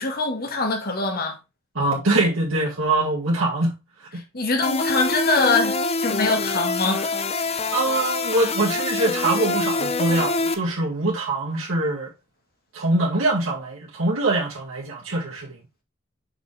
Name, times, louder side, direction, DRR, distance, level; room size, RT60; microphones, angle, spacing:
voice 1, 0.0-1.4 4.3-7.6, left 3 dB, 50° left, 1.9 m, -24 dB
voice 2, 1.7-4.2 7.7-12.1 12.7-15.6, right 2 dB, 90° right, 2.1 m, -23 dB
sound 1, 4.6-10.5, left 3 dB, 30° left, 0.6 m, -25 dB
6.1 x 5.6 x 3.4 m
head